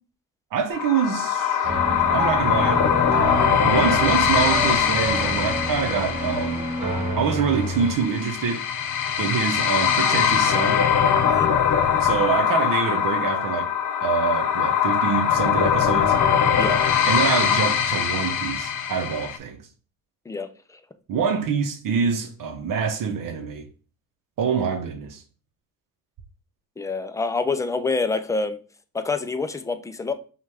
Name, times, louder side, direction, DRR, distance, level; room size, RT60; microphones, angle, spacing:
voice 1, 0.5-2.9 3.6-6.6 7.2-8.6 9.2-10.8 12.0-13.7 14.0-16.2 17.1-19.6 21.1-23.7 24.4-25.2, right 6 dB, 55° right, 0.8 m, -25 dB
sound 1, 0.7-19.4, left 8 dB, 55° left, 0.7 m, -22 dB
sound 2, 1.6-8.0, right 1 dB, 15° right, 2.0 m, -28 dB
voice 2, 20.3-20.8 26.8-28.6 28.9-30.1, left 3 dB, 10° left, 0.3 m, -27 dB
5.3 x 2.4 x 3.4 m
cardioid pair, 100°, 39 cm